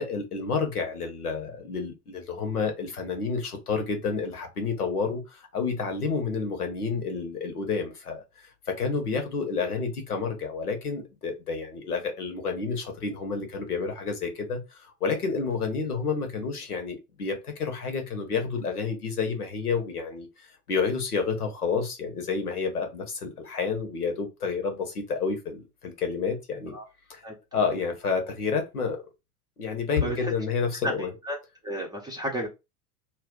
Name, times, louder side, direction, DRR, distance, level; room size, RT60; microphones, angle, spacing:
voice 1, 0.0-26.7 27.1-27.2 27.5-29.0 29.6-31.1, left 5 dB, 75° left, 1.1 m, -30 dB
voice 2, 30.0-30.3 30.8-31.4 31.6-32.5, equal, 10° right, 0.6 m, -32 dB
2.5 x 2.4 x 3.7 m
figure-of-eight pair, 80°, 45 cm